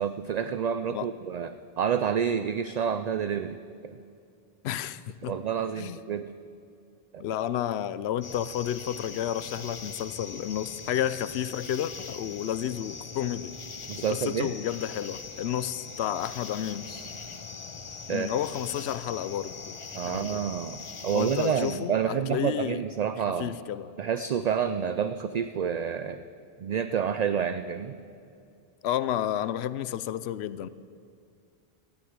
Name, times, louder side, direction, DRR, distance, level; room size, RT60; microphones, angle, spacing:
voice 1, 0.0-4.0 5.2-6.3 7.1-7.2 13.9-14.5 16.9-17.1 18.1-18.4 19.9-23.6 24.0-26.2 26.6-28.0, right 7 dB, 55° right, 11 dB, 0.5 m, -29 dB
voice 2, 4.6-5.3 5.8-6.0 7.2-13.5 14.1-16.9 18.1-19.8 20.0-20.5 21.1-22.8 23.4-23.9 28.8-30.7, left 11 dB, 85° left, 16 dB, 0.8 m, -31 dB
sound 1, 8.2-21.8, left 4 dB, 35° left, 0.6 m, -42 dB
13.0 x 9.8 x 8.8 m, 2.4 s
omnidirectional pair, 1.0 m